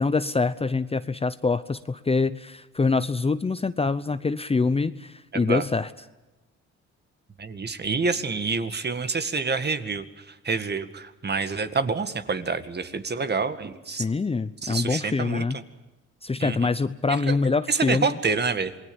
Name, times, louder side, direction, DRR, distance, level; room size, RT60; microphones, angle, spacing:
voice 1, 0.0-5.9 14.0-15.6 16.2-18.1, left 4 dB, 20° left, 13 dB, 0.8 m, -25 dB
voice 2, 5.3-5.6 7.4-14.1 14.6-15.6 16.4-16.7 17.1-17.4 17.7-18.8, right 4 dB, 35° right, 10 dB, 2.0 m, -28 dB
27.5 x 20.5 x 7.1 m, 1.1 s
cardioid pair, 90°, 30 cm